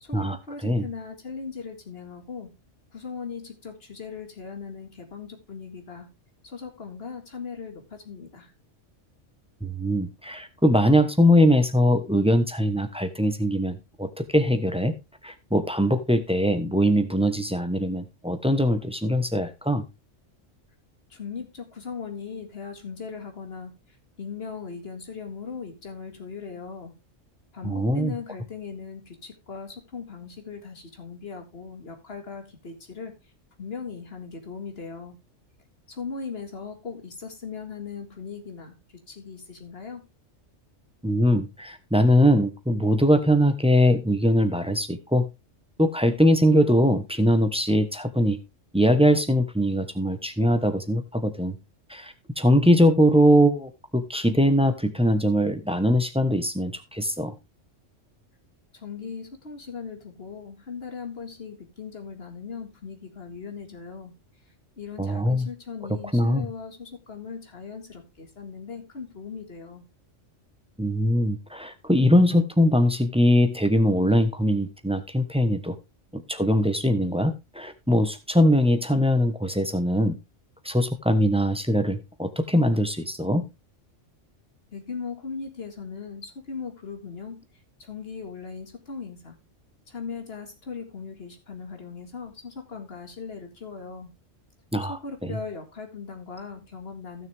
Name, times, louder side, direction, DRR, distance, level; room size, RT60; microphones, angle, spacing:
voice 1, 0.0-2.5 2.9-6.1 6.4-8.5 21.1-26.9 27.5-33.1 33.6-35.2 35.9-40.1 58.7-64.1 64.8-69.8 84.7-87.4 87.8-89.4 89.9-94.1 94.8-97.3, left 5 dB, 55° left, 5 dB, 2.3 m, -38 dB
voice 2, 9.6-14.9 15.2-19.8 27.6-28.1 41.0-45.3 45.8-48.4 48.7-51.6 51.9-57.3 65.0-65.5 65.9-66.4 70.8-75.7 76.1-80.2 80.6-83.4 94.7-95.4, equal, 5° right, 9 dB, 1.1 m, -22 dB
15.0 x 6.5 x 3.5 m, 0.25 s
omnidirectional pair, 1.3 m